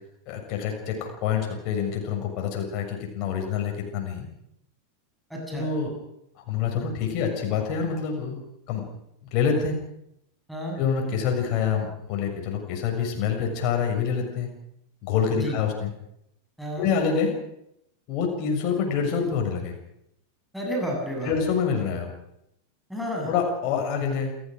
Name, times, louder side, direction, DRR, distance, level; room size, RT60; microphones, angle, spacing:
voice 1, 0.3-4.3 5.5-5.9 6.5-8.8 9.3-9.8 10.8-14.5 15.0-15.9 16.8-17.3 18.1-19.7 21.2-22.1 23.3-24.3, left 6 dB, 40° left, 3 dB, 6.8 m, -26 dB
voice 2, 5.3-5.7 10.5-10.8 15.3-15.5 16.6-16.9 20.5-21.3 22.9-23.3, equal, ahead, -1 dB, 7.8 m, -31 dB
28.5 x 15.5 x 6.5 m, 0.79 s
figure-of-eight pair, 90°, 0 cm